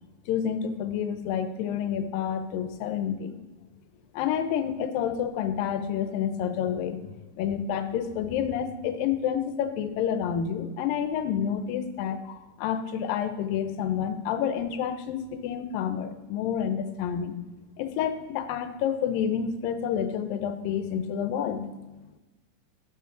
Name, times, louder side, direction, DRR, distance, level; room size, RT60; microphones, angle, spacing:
voice 1, 0.3-3.4 4.1-17.4 17.8-21.7, left 8 dB, 85° left, 9 dB, 2.4 m, -29 dB
12.5 x 6.2 x 3.8 m, 1.1 s
omnidirectional pair, 3.9 m